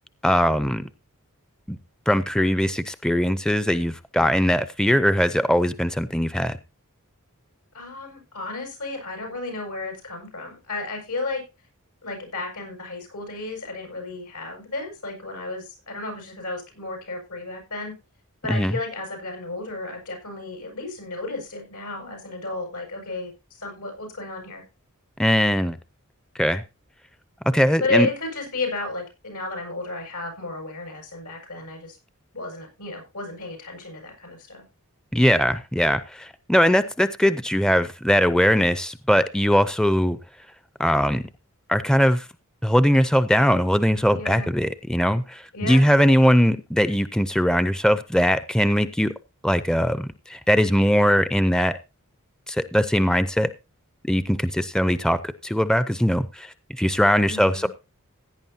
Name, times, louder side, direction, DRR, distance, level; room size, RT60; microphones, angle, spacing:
voice 1, 0.2-0.9 1.7-1.8 2.1-6.6 18.5-18.7 25.2-25.8 26.4-26.6 27.5-28.1 35.1-40.2 40.8-41.2 41.7-42.3 42.6-49.1 49.4-51.8 52.5-53.5 54.1-57.7, equal, 5° left, 13 dB, 0.5 m, -20 dB
voice 2, 7.7-11.4 12.0-17.9 18.4-24.6 27.8-32.0 32.3-34.6 44.1-44.5 45.5-45.9 57.2-57.7, left 2 dB, 90° left, 4 dB, 7.0 m, -32 dB
16.5 x 9.8 x 2.8 m, 0.27 s
head